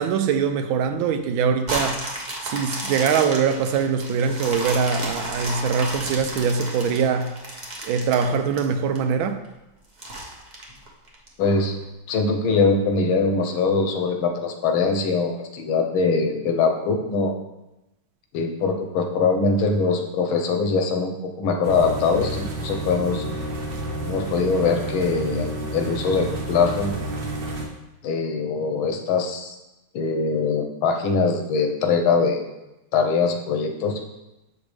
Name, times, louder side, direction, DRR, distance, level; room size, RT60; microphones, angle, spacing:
voice 1, 0.0-2.0 2.4-7.3 7.8-9.4, right 6 dB, 80° right, 8 dB, 1.3 m, -23 dB
sound 1, 1.6-9.0 9.4-9.5 10.0-11.3 11.8-11.9, right 1 dB, 35° right, 0.7 m, -32 dB
voice 2, 11.4-11.7 12.1-17.3 18.3-23.2 24.1-27.0 28.0-29.5 29.9-32.4 32.9-34.0, left 4 dB, 90° left, 4 dB, 1.6 m, -22 dB
sound 2, 21.6-27.7, right 1 dB, 65° right, 1.5 m, -30 dB
7.3 x 5.2 x 3.2 m, 0.96 s
omnidirectional pair, 2.2 m